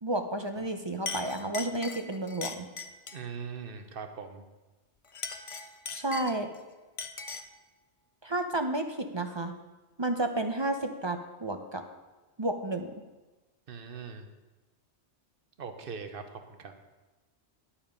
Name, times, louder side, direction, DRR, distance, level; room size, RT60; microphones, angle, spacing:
voice 1, 0.0-2.7 5.9-6.5 8.2-9.5 10.0-11.8 12.4-12.9, right 2 dB, 30° right, 6 dB, 0.5 m, -31 dB
Chink clink, 0.6-0.7 1.1-3.3 5.0-6.6 7.0-7.6, left 4 dB, 40° left, 0.5 m, -39 dB
voice 2, 3.1-4.4 13.7-14.3 15.6-16.7, right 6 dB, 55° right, 7 dB, 1.1 m, -41 dB
10.5 x 7.2 x 5.2 m, 1.2 s
omnidirectional pair, 1.2 m